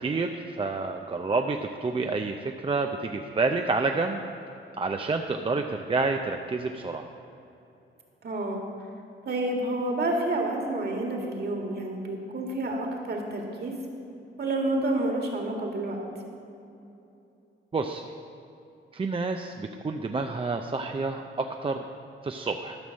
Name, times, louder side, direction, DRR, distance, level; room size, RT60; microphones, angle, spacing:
voice 1, 0.0-2.4 2.6-4.2 4.8-7.0 17.7-18.0 18.9-21.8 22.2-22.8, right 3 dB, 25° right, 4 dB, 0.5 m, -29 dB
voice 2, 8.2-8.6 9.3-13.7 14.4-16.0, right 2 dB, 50° right, 1 dB, 2.0 m, -29 dB
13.0 x 6.0 x 6.4 m, 2.8 s
cardioid pair, 95°, 21 cm